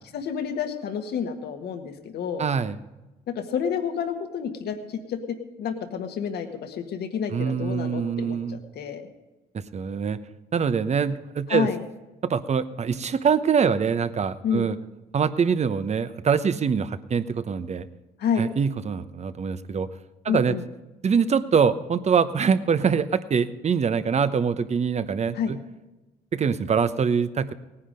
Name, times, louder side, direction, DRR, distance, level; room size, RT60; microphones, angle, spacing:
voice 1, 0.1-2.4 3.3-5.2 5.6-9.0 11.5-11.8 14.4-14.7 18.2-18.5 20.3-20.6 25.3-25.5, left 7 dB, 70° left, 6 dB, 1.7 m, -29 dB
voice 2, 2.4-2.8 7.3-8.6 9.5-10.2 10.5-11.7 12.2-14.8 15.1-17.9 18.4-19.9 20.2-20.5 21.0-25.6 26.3-27.5, right 6 dB, 40° right, 13 dB, 0.9 m, -24 dB
18.0 x 10.0 x 5.2 m, 1.1 s
supercardioid pair, 75°, 17 cm